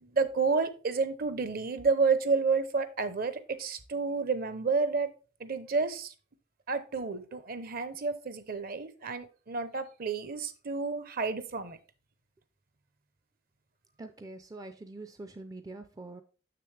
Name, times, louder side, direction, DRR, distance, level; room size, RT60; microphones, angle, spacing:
voice 1, 0.0-5.1 5.4-6.1 6.7-11.8, right 4 dB, 50° right, 0.7 m, -30 dB
voice 2, 14.0-16.2, right 2 dB, 20° right, 0.4 m, -44 dB
6.8 x 6.5 x 3.3 m
head